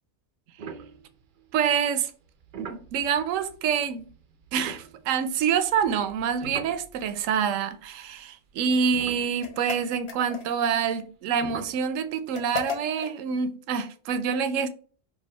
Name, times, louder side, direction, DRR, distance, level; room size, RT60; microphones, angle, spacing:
sound 1, 0.6-1.6 2.2-7.5 7.7-7.9 8.5-8.6 8.9-10.0 11.4-11.9, right 6 dB, 55° right, 0.5 m, -43 dB
voice 1, 1.5-2.1 2.6-4.1 4.5-14.7, right 7 dB, 80° right, 1.0 m, -26 dB
sound 2, 9.4-10.7 12.3-13.2, left 5 dB, 55° left, 1.1 m, -35 dB
4.7 x 2.4 x 4.4 m
omnidirectional pair, 1.4 m